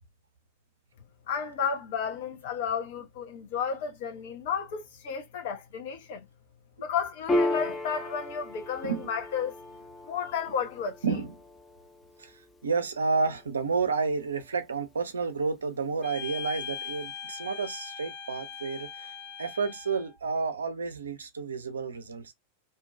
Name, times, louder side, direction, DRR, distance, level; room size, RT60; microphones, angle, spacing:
voice 1, 1.3-6.3 6.8-9.5 10.0-11.0, left 7 dB, 55° left, 0.7 m, -32 dB
Piano, 7.3-14.2, left 1 dB, 10° left, 0.5 m, -35 dB
voice 2, 11.0-11.3 12.2-22.3, right 4 dB, 70° right, 0.5 m, -31 dB
sound 1, 16.0-20.2, left 7 dB, 30° left, 1.1 m, -40 dB
2.5 x 2.2 x 2.3 m
figure-of-eight pair, 90°, 0 cm